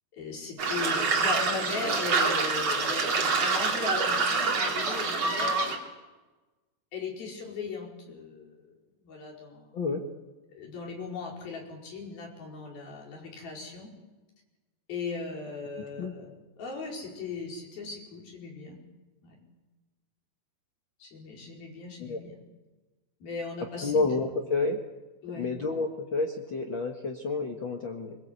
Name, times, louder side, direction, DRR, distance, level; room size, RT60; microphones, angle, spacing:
voice 1, 0.1-5.8 6.9-8.7 9.0-9.7 10.5-13.9 14.9-18.8 19.2-19.4 21.0-22.4 23.2-23.9 25.2-25.5, left 4 dB, 65° left, -1 dB, 6.7 m, -38 dB
sound 1, 0.6-5.8, right 4 dB, 40° right, 3.6 m, -26 dB
voice 2, 23.8-24.8 25.3-28.2, left 3 dB, 85° left, 2 dB, 1.0 m, -29 dB
23.0 x 22.0 x 8.2 m, 1.2 s
omnidirectional pair, 4.7 m